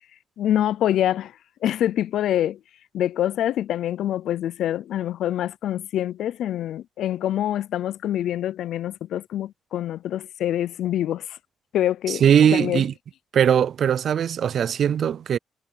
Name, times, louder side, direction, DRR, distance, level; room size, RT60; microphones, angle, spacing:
voice 1, 0.4-1.3 1.6-2.6 2.9-11.4 11.7-12.2 12.5-12.8, left 11 dB, 80° left, 0.5 m, -25 dB
voice 2, 12.1-12.9 13.3-15.4, right 8 dB, 50° right, 0.3 m, -20 dB
cardioid pair, 165°, 0 cm